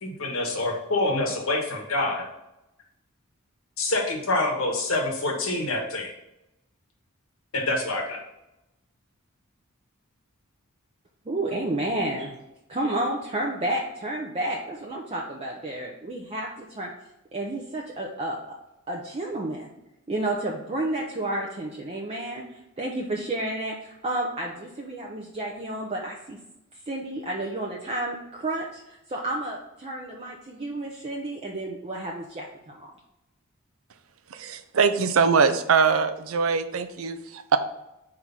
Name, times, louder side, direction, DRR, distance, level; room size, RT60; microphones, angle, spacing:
voice 1, 0.0-2.2 3.8-6.1 7.5-8.2, left 2 dB, 75° left, 1 dB, 1.4 m, -26 dB
voice 2, 11.3-12.4 12.7-16.9 17.3-18.4 18.9-19.7 20.1-26.4 26.9-32.9, right 1 dB, 30° right, -2 dB, 0.6 m, -31 dB
voice 3, 34.3-37.6, right 5 dB, 75° right, 10 dB, 0.6 m, -22 dB
4.7 x 3.8 x 5.6 m, 0.91 s
head